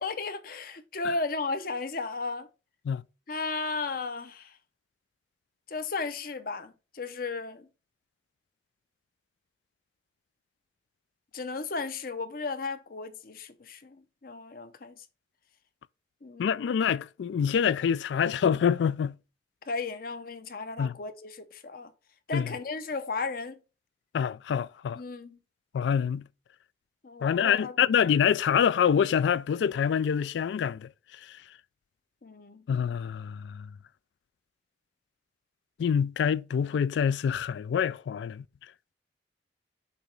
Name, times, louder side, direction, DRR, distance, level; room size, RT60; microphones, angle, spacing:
voice 1, 0.0-2.5 3.3-4.6 5.7-7.7 11.3-15.0 16.2-16.7 19.7-21.9 22.3-23.6 24.9-25.4 27.0-27.7 32.2-32.6, left 3 dB, 55° left, 0.7 m, -35 dB
voice 2, 16.4-19.2 20.8-20.9 22.3-22.5 24.1-25.0 25.7-26.2 27.2-30.9 32.7-33.7 35.8-38.4, left 7 dB, 80° left, 0.3 m, -26 dB
6.9 x 3.0 x 5.2 m
head